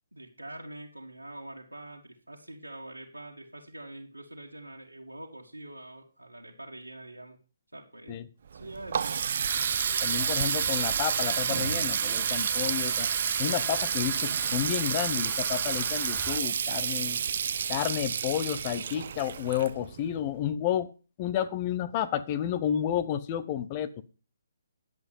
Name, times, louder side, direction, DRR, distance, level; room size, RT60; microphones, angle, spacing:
voice 1, 0.1-7.4 7.7-8.2 8.5-9.2, right 1 dB, 85° right, -1 dB, 2.2 m, -44 dB
Water tap faucet, 8.5-20.2, right 7 dB, 45° right, 0.5 m, -29 dB
sound 1, 9.5-16.4, right 4 dB, 5° right, 1.0 m, -44 dB
voice 2, 10.0-13.1 13.4-17.2 17.7-20.9 21.2-24.0, left 11 dB, 25° left, 13 dB, 0.8 m, -31 dB
10.5 x 8.0 x 5.4 m, 0.35 s
figure-of-eight pair, 135°, 0 cm